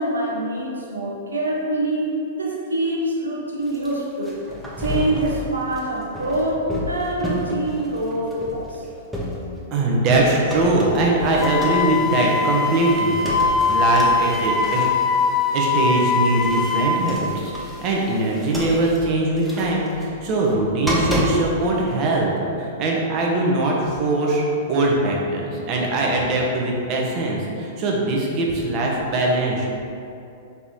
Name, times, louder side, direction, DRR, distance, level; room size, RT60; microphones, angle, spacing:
voice 1, 0.0-4.4 4.8-8.8, right 1 dB, 85° right, -2 dB, 0.7 m, -25 dB
sound 1, 3.6-9.7 10.1-22.3, left 1 dB, 5° right, 0.8 m, -31 dB
voice 2, 9.7-14.9 15.5-24.4 24.7-29.7, right 2 dB, 40° right, -2 dB, 0.8 m, -21 dB
Wind instrument woodwind instrument, 11.4-17.1, left 4 dB, 20° left, 0.3 m, -21 dB
3.4 x 3.0 x 4.1 m, 2.6 s
hypercardioid pair, 105°, 0 cm